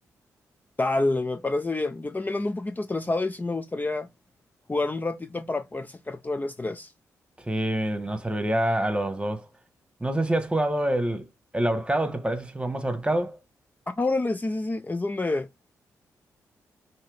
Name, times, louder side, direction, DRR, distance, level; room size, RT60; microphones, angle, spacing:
voice 1, 0.8-4.1 4.7-6.9 14.0-15.5, left 2 dB, 25° left, 0.5 m, -28 dB
voice 2, 7.4-9.5 10.0-11.3 11.5-13.4, right 1 dB, 15° right, 1.3 m, -26 dB
5.5 x 2.8 x 3.3 m
hypercardioid pair, 40°, 7 cm